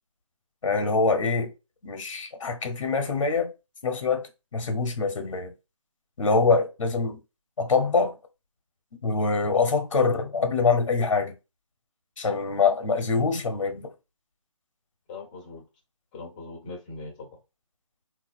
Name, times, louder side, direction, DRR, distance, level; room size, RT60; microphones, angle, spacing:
voice 1, 0.6-1.5 1.8-3.5 3.8-5.5 6.2-7.2 7.6-8.1 9.0-11.3 12.2-13.9, left 4 dB, 70° left, 0.8 m, -24 dB
voice 2, 15.1-15.6 16.1-17.4, left 3 dB, 15° left, 0.5 m, -41 dB
3.2 x 2.4 x 2.4 m
figure-of-eight pair, 155°, 17 cm